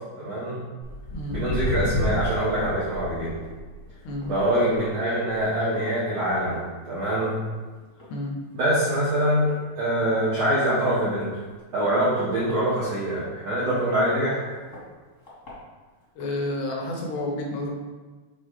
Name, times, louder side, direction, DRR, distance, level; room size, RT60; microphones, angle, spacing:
voice 1, 0.2-0.6 1.3-3.3 4.2-7.4 8.5-11.4 11.7-14.5, right 1 dB, 75° right, -10 dB, 1.4 m, -24 dB
Walk footsteps, 0.8-7.5 7.8-8.1 8.7-8.8 9.5-9.6 10.0-10.1 10.2-10.3 10.9-11.1 11.7-13.3 13.9-14.0 14.7-14.8 15.2-15.5 16.2-16.3, equal, 50° left, 0.9 m, -33 dB
voice 2, 16.2-17.7, left 1 dB, 80° left, 0 dB, 2.6 m, -30 dB
7.5 x 3.6 x 4.9 m, 1.3 s
omnidirectional pair, 5.5 m